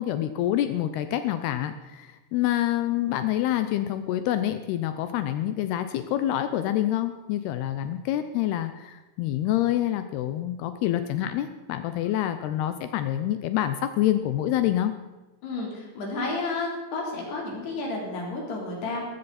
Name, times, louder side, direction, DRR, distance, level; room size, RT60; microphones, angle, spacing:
voice 1, 0.0-14.9, left 12 dB, 85° left, 9 dB, 2.3 m, -27 dB
voice 2, 15.4-19.0, left 3 dB, 60° left, -2 dB, 5.8 m, -31 dB
19.0 x 14.5 x 4.2 m, 1.1 s
omnidirectional pair, 5.5 m